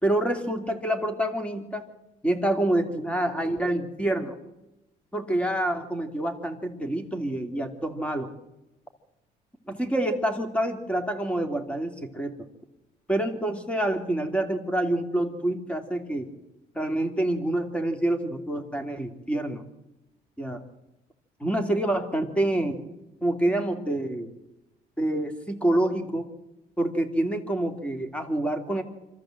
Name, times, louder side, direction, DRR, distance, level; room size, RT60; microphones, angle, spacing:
voice 1, 0.0-1.8 2.2-4.3 5.1-8.3 9.7-12.3 13.1-16.3 16.7-19.6 20.4-20.6 21.4-22.8 23.2-24.3 25.0-26.3 26.8-28.8, right 1 dB, 5° left, 6 dB, 2.8 m, -27 dB
26.0 x 13.5 x 7.8 m, 0.97 s
cardioid pair, 110°, 17 cm